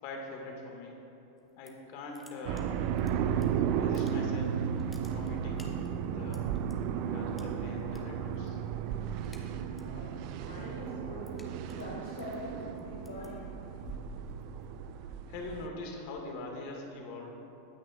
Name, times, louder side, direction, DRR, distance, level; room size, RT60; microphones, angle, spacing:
voice 1, 0.0-0.9 1.6-2.8 3.8-4.6 5.1-6.4 7.1-8.6 15.3-17.3, left 2 dB, 45° left, 1 dB, 2.0 m, -43 dB
sound 1, 1.4-1.9 2.1-3.5 3.8-4.4 4.7-6.7 7.4-8.0 8.3-8.6 8.9-10.0 10.4-14.9, left 1 dB, 10° left, 1.2 m, -53 dB
sound 2, 2.5-15.7, right 8 dB, 45° right, 0.6 m, -34 dB
voice 2, 9.8-10.1 10.4-13.5, left 1 dB, 70° left, -5 dB, 1.9 m, -44 dB
21.5 x 9.4 x 2.5 m, 3.0 s
figure-of-eight pair, 90°, 0 cm